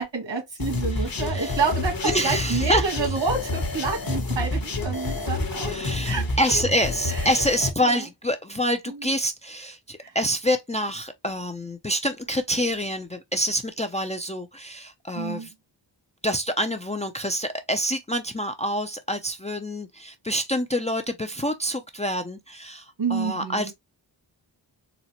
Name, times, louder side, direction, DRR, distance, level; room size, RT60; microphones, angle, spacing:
voice 1, 0.0-5.7 6.0-6.3 7.1-7.3 7.8-8.0 8.9-9.1 10.0-10.1 15.1-15.5 23.0-23.7, right 4 dB, 70° right, 1.8 m, -28 dB
sound 1, 0.6-7.7, left 2 dB, 50° left, 1.0 m, -28 dB
voice 2, 1.1-1.6 2.1-2.9 5.7-15.5 16.2-23.7, equal, 15° left, 0.4 m, -27 dB
4.0 x 2.1 x 2.8 m
wide cardioid pair, 65°, 45 cm